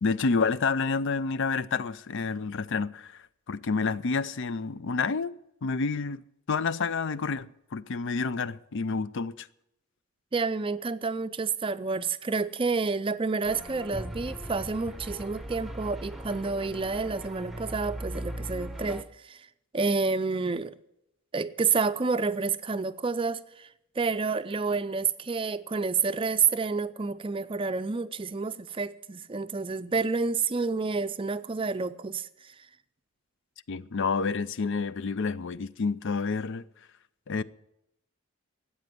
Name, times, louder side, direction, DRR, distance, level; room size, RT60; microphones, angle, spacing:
voice 1, 0.0-3.1 3.5-5.3 5.6-6.2 6.5-9.5 33.7-36.6 37.3-37.4, left 4 dB, 60° left, 0.5 m, -29 dB
voice 2, 10.3-19.5 19.7-20.8 21.3-32.7, right 4 dB, 25° right, 0.5 m, -29 dB
sound 1, 13.4-19.0, right 1 dB, ahead, 0.8 m, -39 dB
13.5 x 8.7 x 9.2 m
head